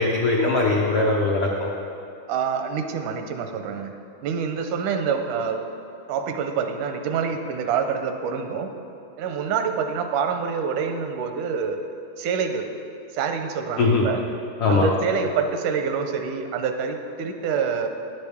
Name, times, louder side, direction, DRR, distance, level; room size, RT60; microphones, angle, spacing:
voice 1, 0.0-1.7 13.8-14.1 14.6-14.9, left 3 dB, 80° left, -2 dB, 1.1 m, -20 dB
voice 2, 2.3-3.9 4.2-5.6 6.1-8.7 9.2-11.8 12.2-12.7 13.1-14.2 14.7-17.9, right 6 dB, 85° right, 6 dB, 2.1 m, -26 dB
13.5 x 10.5 x 3.5 m, 2.7 s
omnidirectional pair, 3.6 m